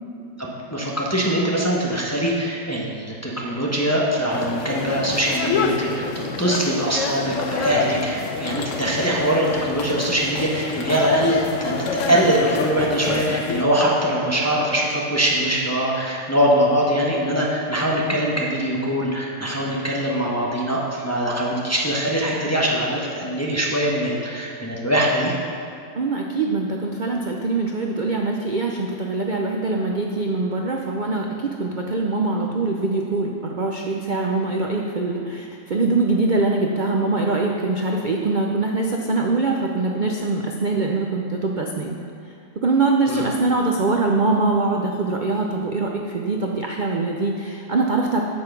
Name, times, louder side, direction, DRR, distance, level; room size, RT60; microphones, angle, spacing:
voice 1, 0.7-6.0 6.4-25.3 43.1-43.2, right 1 dB, 10° left, -4 dB, 1.0 m, -22 dB
sound 1, 4.3-13.6, left 5 dB, 60° left, 0.9 m, -28 dB
voice 2, 25.9-42.0 42.6-48.2, right 3 dB, 80° right, 0 dB, 0.4 m, -23 dB
8.5 x 7.7 x 6.0 m, 2.4 s
omnidirectional pair, 1.8 m